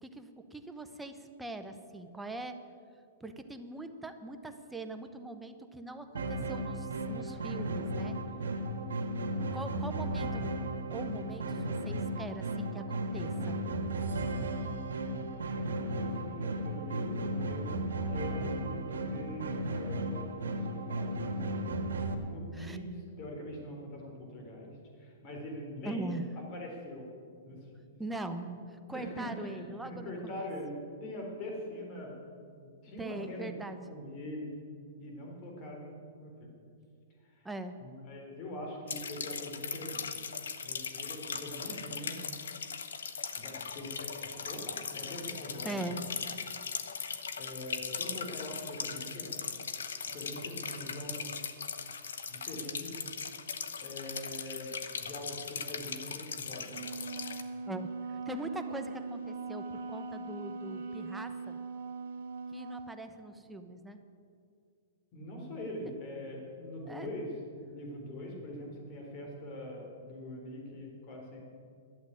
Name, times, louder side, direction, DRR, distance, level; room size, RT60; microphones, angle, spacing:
voice 1, 0.0-2.6 3.2-8.2 9.5-10.5 10.9-13.6 22.5-22.8 25.8-26.2 28.0-28.5 28.9-30.5 33.0-33.8 37.4-37.8 45.6-46.1 57.7-61.6 62.5-64.0 66.8-67.1, right 2 dB, 5° right, 7 dB, 0.8 m, -41 dB
sound 1, 6.1-22.1, right 1 dB, 90° right, 1.5 m, -35 dB
voice 2, 16.0-17.7 18.1-21.3 22.3-26.2 26.5-27.1 27.4-27.9 28.4-28.5 28.9-30.7 31.0-32.1 32.6-33.5 33.9-34.5 35.0-35.9 36.2-36.5 37.2-37.5 37.8-40.2 40.6-42.2 43.3-46.0 47.4-49.4 50.1-51.3 52.3-52.9 53.8-56.8 65.1-71.4, left 1 dB, 35° left, 0 dB, 3.9 m, -43 dB
sound 2, 38.9-57.4, left 6 dB, 85° left, 1.0 m, -39 dB
Wind instrument woodwind instrument, 56.7-63.0, right 4 dB, 75° right, 1.5 m, -40 dB
12.0 x 7.9 x 9.7 m, 2.4 s
hypercardioid pair, 145°, 0 cm